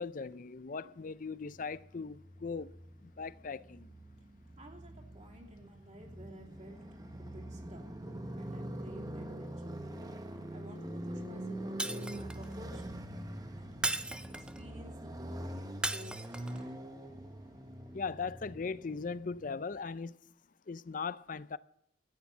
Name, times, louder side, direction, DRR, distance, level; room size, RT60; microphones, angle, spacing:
voice 1, 0.0-2.8 3.0-3.9 17.9-20.1 20.7-21.6, left 5 dB, 45° left, 0.5 m, -39 dB
Motorcycle, 1.4-19.5, right 1 dB, 20° right, 1.2 m, -44 dB
voice 2, 4.6-6.8 7.2-7.8 8.4-9.8 10.5-13.1 13.5-13.8 14.3-15.6 15.9-16.8, right 1 dB, 40° right, 3.0 m, -53 dB
Shatter, 11.8-12.5 13.8-14.6 15.8-16.6, right 1 dB, 5° right, 0.5 m, -36 dB
14.5 x 9.9 x 7.3 m
head